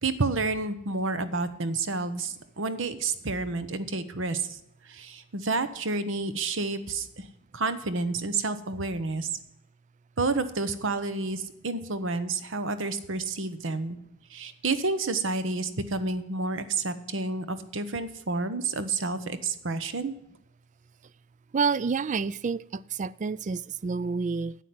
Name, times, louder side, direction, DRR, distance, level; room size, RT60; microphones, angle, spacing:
voice 1, 0.0-4.6 4.9-7.2 7.5-9.3 10.2-14.0 14.3-20.2, right 3 dB, 70° right, 12 dB, 1.1 m, -30 dB
voice 2, 21.5-24.6, right 5 dB, 40° right, 21 dB, 0.4 m, -29 dB
9.9 x 8.4 x 7.7 m, 0.85 s
head